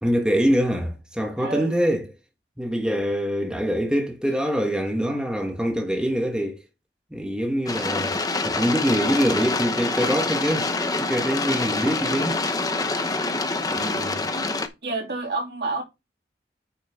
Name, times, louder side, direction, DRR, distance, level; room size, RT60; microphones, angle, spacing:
voice 1, 0.0-2.1 2.6-6.6 7.1-8.2 8.4-10.7 11.0-12.4 13.7-14.2, equal, 5° right, 1.4 m, -24 dB
voice 2, 1.4-1.8 13.7-14.4 14.8-15.8, right 3 dB, 65° right, 2.9 m, -30 dB
sound 1, 7.7-14.7, left 3 dB, 20° left, 0.9 m, -26 dB
9.3 x 6.3 x 3.6 m
head